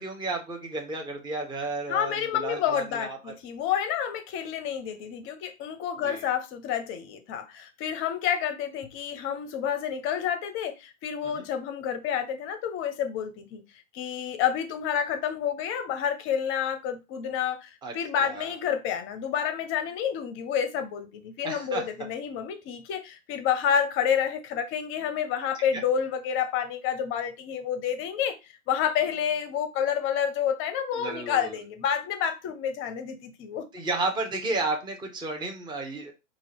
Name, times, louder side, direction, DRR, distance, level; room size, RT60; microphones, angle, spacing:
voice 1, 0.0-3.3 6.0-6.2 11.3-11.5 17.8-17.9 18.2-18.5 21.4-21.9 25.7-25.8 31.0-31.6 33.7-36.1, right 3 dB, 10° right, 0.9 m, -32 dB
voice 2, 1.9-13.6 13.9-28.4 28.7-33.7, left 8 dB, 35° left, 0.7 m, -29 dB
5.2 x 2.5 x 3.4 m
hypercardioid pair, 105°, 39 cm